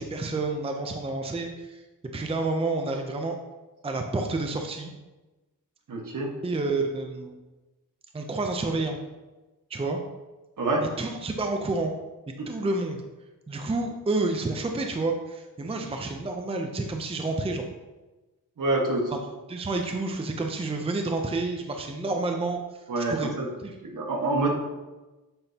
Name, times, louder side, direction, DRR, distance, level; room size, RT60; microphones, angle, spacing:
voice 1, 0.0-1.8 2.1-3.3 3.8-4.9 6.4-7.4 8.1-9.0 9.7-10.0 11.0-11.9 12.5-13.0 13.5-17.6 19.5-23.3 23.6-23.7, right 3 dB, 15° right, 3 dB, 0.6 m, -29 dB
voice 2, 5.9-6.3 10.6-10.8 12.4-12.5 18.6-19.2 22.9-23.5 23.8-24.5, right 2 dB, 60° right, 0 dB, 1.5 m, -26 dB
8.8 x 6.2 x 2.8 m, 1.1 s
wide cardioid pair, 135°, 35 cm